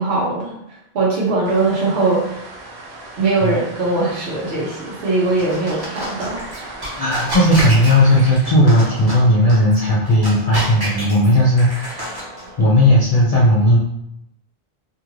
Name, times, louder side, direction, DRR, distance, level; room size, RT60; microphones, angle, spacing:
voice 1, 0.0-2.5 3.2-6.4, right 3 dB, 85° right, -5 dB, 1.0 m, -21 dB
sound 1, 1.4-8.3, right 2 dB, 65° right, 0.7 m, -37 dB
sound 2, 5.2-12.7, equal, 25° right, 0.8 m, -30 dB
voice 2, 7.0-12.2 12.6-13.8, left 1 dB, 45° left, -5 dB, 0.5 m, -15 dB
2.6 x 2.4 x 3.0 m, 0.83 s
omnidirectional pair, 1.1 m